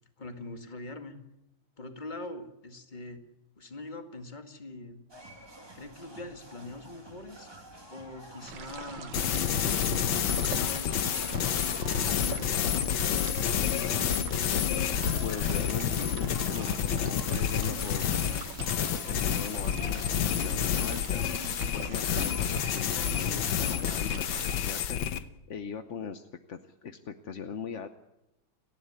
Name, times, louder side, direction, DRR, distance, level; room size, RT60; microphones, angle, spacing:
voice 1, 0.2-1.1 1.8-3.2 3.6-5.0 5.7-7.5 7.9-9.2 9.9-11.6 12.0-12.9, left 2 dB, 25° left, 5 dB, 2.1 m, -43 dB
sound 1, 5.1-23.5, right 1 dB, 10° right, 2.2 m, -48 dB
sound 2, 8.4-24.6, right 8 dB, 80° right, 1.9 m, -44 dB
sound 3, 9.1-25.2, left 9 dB, 70° left, 1.7 m, -29 dB
voice 2, 15.2-18.4 18.9-25.2 25.5-27.9, left 6 dB, 50° left, 8 dB, 1.0 m, -40 dB
30.0 x 11.5 x 9.7 m, 0.91 s
omnidirectional pair, 2.2 m